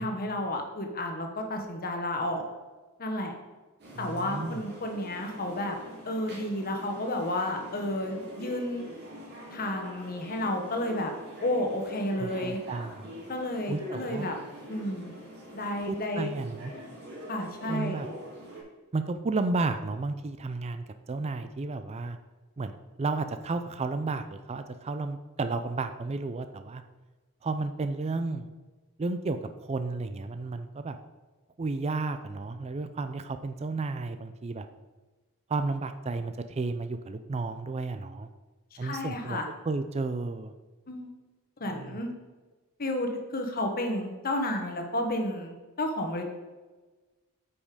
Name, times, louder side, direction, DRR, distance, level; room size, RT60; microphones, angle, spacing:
voice 1, 0.0-2.4 3.0-3.3 4.0-5.7 6.0-8.8 9.5-11.1 11.4-12.6 13.3-14.3 14.7-15.1 15.5-16.3 17.3-18.0 38.8-39.5 40.9-41.1 41.6-42.1 42.8-46.2, left 1 dB, 40° left, 4 dB, 1.2 m, -31 dB
sound 1, 3.8-18.6, equal, 50° right, 2.3 m, -44 dB
voice 2, 4.0-4.6 12.2-13.1 13.7-14.3 15.9-16.7 17.7-18.1 18.9-22.2 22.6-26.8 27.4-28.5 29.0-31.0 31.6-34.7 35.5-38.3 38.8-39.4 39.7-40.5 41.7-42.0, right 3 dB, 30° right, 9 dB, 0.4 m, -32 dB
8.4 x 5.2 x 5.0 m, 1.2 s
head